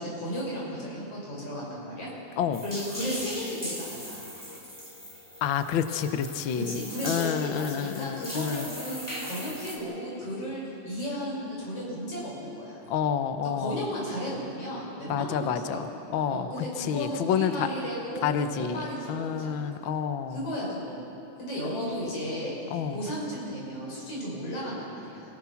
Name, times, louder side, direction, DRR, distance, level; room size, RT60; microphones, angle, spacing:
voice 1, 0.0-2.1 2.6-4.3 6.6-12.8 13.6-15.8 16.3-18.3 18.6-19.6 20.3-21.0 21.4-22.5 22.9-25.2, equal, 50° left, -5 dB, 7.9 m, -34 dB
sound 1, 2.5-9.8, equal, 5° left, 3.0 m, -39 dB
voice 2, 5.4-8.7 12.9-13.8 15.1-17.7 18.2-20.4 22.7-23.0, left 8 dB, 80° left, 9 dB, 1.1 m, -29 dB
29.5 x 18.0 x 5.9 m, 3.0 s
omnidirectional pair, 3.4 m